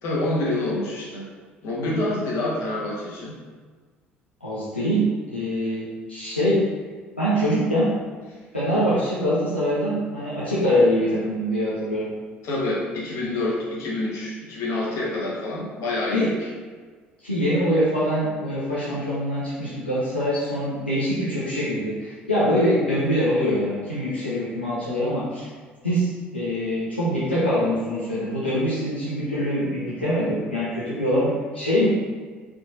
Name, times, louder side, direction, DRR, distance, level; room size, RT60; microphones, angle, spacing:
voice 1, 0.0-1.3 1.6-3.4 12.4-16.4, left 2 dB, 55° left, -5 dB, 1.3 m, -27 dB
voice 2, 4.4-5.0 5.3-6.5 7.2-7.9 8.5-12.1 16.1-16.3 17.2-25.5 25.8-31.9, equal, 90° left, -11 dB, 0.8 m, -24 dB
4.6 x 3.7 x 2.6 m, 1.5 s
figure-of-eight pair, 55°, 6 cm